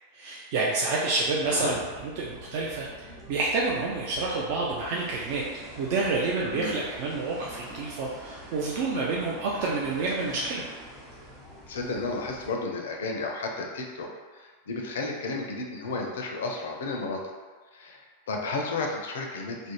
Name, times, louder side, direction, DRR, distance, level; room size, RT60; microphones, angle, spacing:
voice 1, 0.1-5.4 5.8-10.6, right 3 dB, 50° right, -4 dB, 0.3 m, -28 dB
sound 1, 1.4-12.5, equal, 15° right, 0.9 m, -46 dB
voice 2, 6.4-6.9 11.7-14.1 14.3-17.2 17.7-19.7, left 3 dB, 60° left, 1 dB, 0.4 m, -33 dB
2.5 x 2.0 x 3.0 m, 1.4 s
figure-of-eight pair, 90°, 0 cm